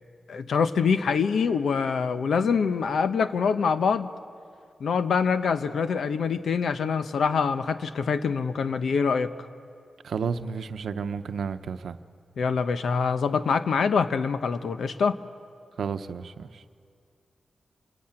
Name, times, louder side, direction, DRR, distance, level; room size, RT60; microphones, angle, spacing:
voice 1, 0.3-4.1 4.8-9.3 12.4-15.2, left 5 dB, 85° left, 10 dB, 0.9 m, -25 dB
voice 2, 10.0-12.0 15.8-16.6, right 6 dB, 90° right, 10 dB, 0.8 m, -32 dB
27.5 x 15.5 x 8.9 m, 2.3 s
wide cardioid pair, 160°, 0 cm